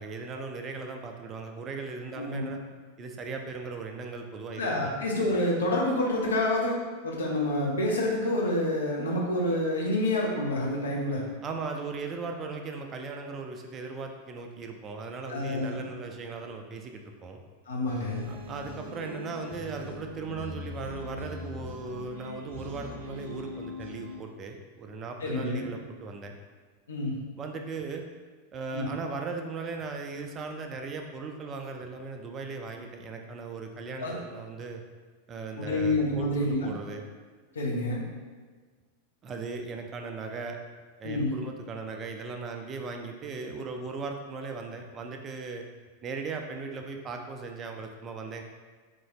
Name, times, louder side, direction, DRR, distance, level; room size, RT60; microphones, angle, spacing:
voice 1, 0.0-2.6 3.0-5.0 11.4-17.4 18.3-26.3 27.4-28.0 28.5-34.8 35.3-37.0 39.2-40.6 41.0-45.6 46.0-48.4, right 4 dB, 25° right, 4 dB, 0.3 m, -38 dB
voice 2, 4.6-6.8 7.0-11.2 15.3-15.8 17.7-18.2 25.2-25.7 26.9-27.2 28.7-28.9 34.0-34.1 35.6-36.7 37.5-38.0 41.0-41.3, left 1 dB, 70° left, -4 dB, 0.8 m, -28 dB
sound 1, 17.9-24.2, left 2 dB, 60° right, 0.6 m, -41 dB
3.7 x 2.6 x 3.1 m, 1.5 s
figure-of-eight pair, 90°, 0 cm